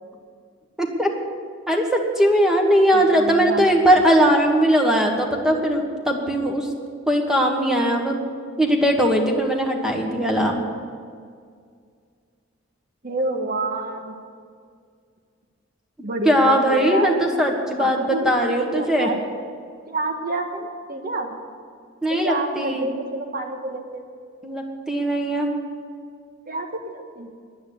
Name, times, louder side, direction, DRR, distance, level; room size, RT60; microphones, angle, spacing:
voice 1, 0.8-1.1 1.7-6.7 7.1-8.2 8.6-10.6 16.2-19.1 22.0-22.9 24.4-25.5, equal, 5° right, 1 dB, 1.4 m, -19 dB
voice 2, 2.9-3.7 4.0-4.1 13.0-14.1 16.0-17.1 17.8-19.2 19.9-21.3 22.1-24.0 26.5-27.3, right 2 dB, 45° right, 4 dB, 1.5 m, -28 dB
11.0 x 9.4 x 9.9 m, 2.1 s
head